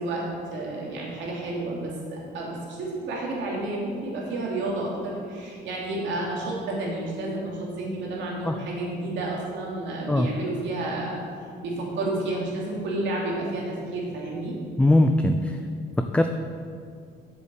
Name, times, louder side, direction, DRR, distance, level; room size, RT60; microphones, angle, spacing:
voice 1, 0.0-11.2 11.6-14.6, right 2 dB, 80° right, -3 dB, 3.0 m, -31 dB
voice 2, 14.8-15.6 16.0-16.3, left 1 dB, 5° left, 5 dB, 0.4 m, -20 dB
7.7 x 7.6 x 7.7 m, 2.3 s
cardioid pair, 140°, 19 cm